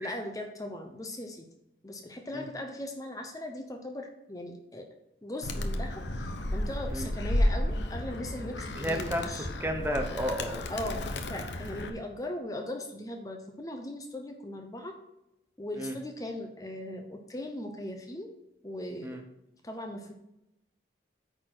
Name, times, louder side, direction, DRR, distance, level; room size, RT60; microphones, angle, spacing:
voice 1, 0.0-1.5 1.8-4.8 5.2-9.5 10.7-15.0 15.6-18.3 18.6-19.2 19.6-20.1, left 1 dB, 20° left, 4 dB, 0.8 m, -39 dB
Animal, 5.4-11.9, left 1 dB, 85° left, 0.9 m, -32 dB
voice 2, 8.8-9.2 9.6-10.6 15.8-15.9 19.0-19.2, equal, 15° right, 3 dB, 0.9 m, -32 dB
9.1 x 4.3 x 6.0 m, 0.87 s
head